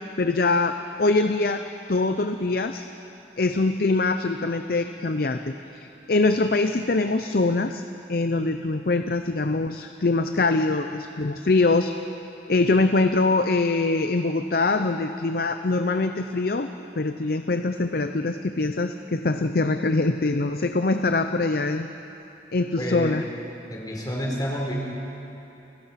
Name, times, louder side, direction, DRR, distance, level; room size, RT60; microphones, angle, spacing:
voice 1, 0.2-1.6 1.9-2.9 3.4-7.8 8.1-11.9 12.5-16.7 17.0-21.9 22.5-23.2, left 3 dB, 55° left, 8 dB, 0.6 m, -23 dB
voice 2, 22.8-23.2 23.7-24.7, equal, 25° left, -2 dB, 3.8 m, -29 dB
29.5 x 16.5 x 5.8 m, 2.9 s
head